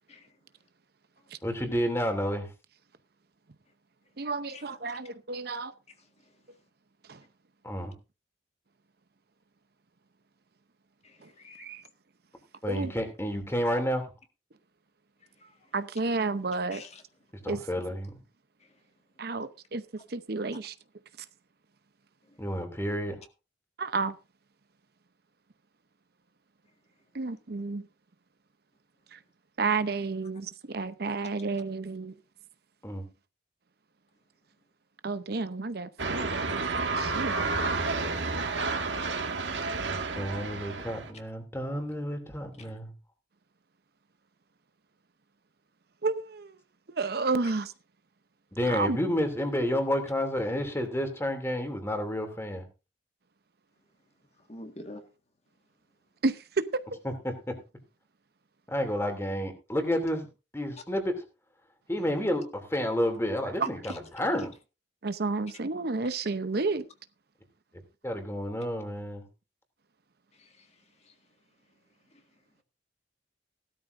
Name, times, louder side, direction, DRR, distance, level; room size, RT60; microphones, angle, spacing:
voice 1, 1.4-2.5 7.6-7.9 12.6-14.1 17.4-18.1 22.4-23.1 32.8-33.0 40.1-42.9 48.6-52.6 57.2-57.3 58.7-60.3 60.5-61.2 61.9-64.5 68.0-69.2, equal, 15° left, 2.8 m, -30 dB
voice 2, 4.2-5.7 7.1-7.2 11.2-11.3 11.6-11.8 12.7-12.9 15.7-16.8 17.5-17.6 19.2-20.7 23.8-24.2 27.1-27.9 29.1-29.2 29.6-32.1 35.0-36.6 37.0-37.3 46.0-46.6 46.9-47.7 48.7-49.0 56.2-56.8 63.6-63.7 65.0-66.8, right 3 dB, 60° right, 0.8 m, -31 dB
voice 3, 11.0-11.6 15.4-15.5 16.7-17.0 54.5-55.0 70.4-70.7, left 2 dB, 35° left, 1.8 m, -46 dB
sound 1, 36.0-41.1, right 3 dB, 90° right, 2.0 m, -30 dB
17.0 x 12.5 x 2.6 m
head